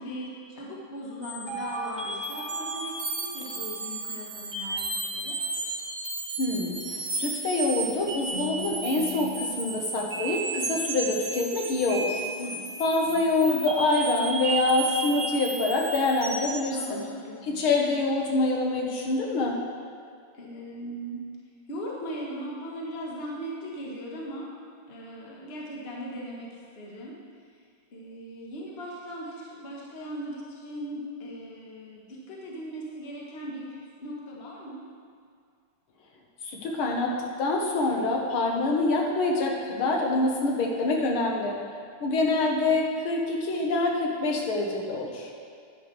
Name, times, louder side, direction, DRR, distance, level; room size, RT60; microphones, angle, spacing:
voice 1, 0.0-5.4 7.7-7.8 12.4-12.7 13.0-13.2 16.7-17.7 20.3-21.3 21.7-24.5 24.9-27.2 27.9-34.8, equal, 35° left, -3 dB, 1.4 m, -39 dB
sound 1, 1.2-16.7, right 3 dB, 55° right, 0.5 m, -34 dB
voice 2, 6.4-12.2 12.8-17.0 17.4-19.6 36.4-41.5 42.0-45.3, left 2 dB, 85° left, 0 dB, 2.1 m, -26 dB
10.5 x 9.7 x 3.3 m, 2.2 s
omnidirectional pair, 2.3 m